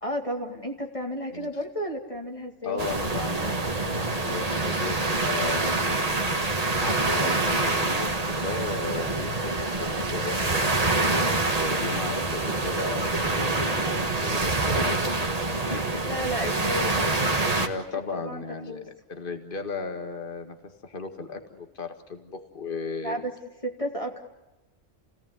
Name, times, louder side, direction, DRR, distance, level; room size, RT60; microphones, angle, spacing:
voice 1, 0.0-2.8 7.2-7.4 16.1-17.1 18.1-18.9 23.0-23.3 23.6-24.2, equal, 25° left, 1 dB, 2.3 m, -32 dB
voice 2, 2.6-6.2 6.8-11.1 11.5-15.0 15.5-15.9 17.6-20.6 20.8-23.2, left 4 dB, 45° left, 6 dB, 2.1 m, -35 dB
sound 1, 2.8-17.7, right 2 dB, 30° right, 1.7 m, -26 dB
29.5 x 17.5 x 9.7 m, 1.0 s
omnidirectional pair, 1.3 m